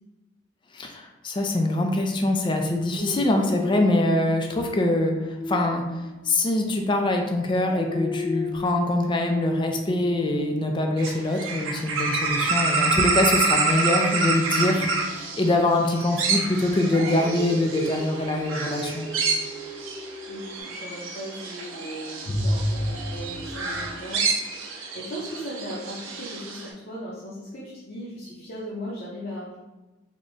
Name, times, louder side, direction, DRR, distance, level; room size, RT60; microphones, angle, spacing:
voice 1, 0.7-5.2 5.5-5.9 6.2-19.1 22.3-22.7, left 1 dB, 25° left, 3 dB, 0.3 m, -24 dB
Dog, 3.0-7.1 7.5-12.5 13.6-20.6, left 2 dB, 30° right, 0.6 m, -37 dB
sound 1, 11.0-26.7, right 4 dB, 85° right, 0.6 m, -28 dB
voice 2, 20.3-24.2 24.9-29.6, equal, 50° left, -7 dB, 0.7 m, -37 dB
3.5 x 2.2 x 3.8 m, 1.1 s
head